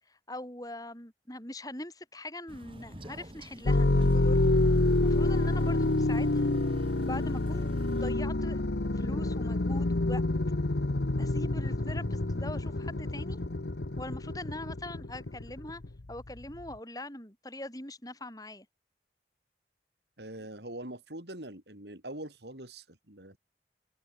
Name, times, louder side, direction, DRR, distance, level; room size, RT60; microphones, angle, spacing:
voice 1, 0.1-4.5 5.0-6.5 7.0-8.6 8.9-10.2 11.2-13.4 14.0-15.8 16.1-18.7, left 1 dB, 20° left, 6.1 m, -42 dB
Crow, 2.5-8.1, right 1 dB, 30° right, 7.0 m, -50 dB
sound 1, 3.6-16.7, left 2 dB, 80° left, 1.1 m, -28 dB
voice 2, 20.2-23.4, right 1 dB, 75° right, 6.0 m, -43 dB
head